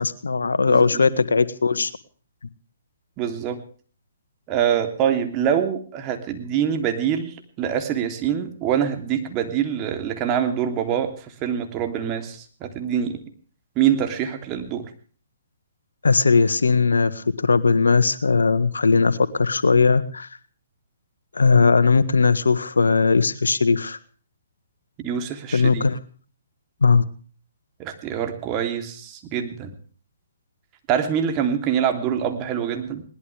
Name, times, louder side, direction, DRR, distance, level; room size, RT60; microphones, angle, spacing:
voice 1, 0.0-1.9 16.0-20.3 21.3-24.0 25.5-26.0 26.8-27.0, left 4 dB, 85° left, 14 dB, 1.5 m, -18 dB
voice 2, 0.7-1.0 3.2-3.6 4.5-13.2 13.7-14.9 25.0-25.9 27.8-29.7 30.9-33.0, right 9 dB, 30° right, 6 dB, 3.2 m, -25 dB
21.5 x 19.5 x 3.5 m, 0.42 s
hypercardioid pair, 135°, 0 cm